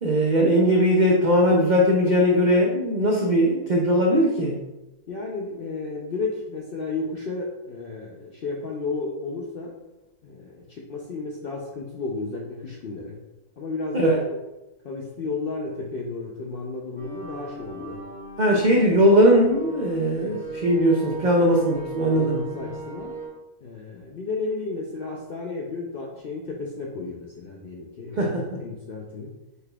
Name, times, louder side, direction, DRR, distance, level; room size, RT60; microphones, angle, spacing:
voice 1, 0.0-4.6 13.9-14.2 18.4-22.4 28.2-28.5, equal, 80° right, -1 dB, 0.4 m, -19 dB
voice 2, 5.1-9.7 10.2-13.2 13.6-14.4 14.8-18.0 20.1-20.4 21.4-21.5 22.0-23.1 23.6-29.3, left 3 dB, 70° left, -2 dB, 0.5 m, -33 dB
sound 1, 17.0-23.3, right 4 dB, 30° right, 1.6 m, -37 dB
5.3 x 4.0 x 2.3 m, 1.0 s
omnidirectional pair, 1.6 m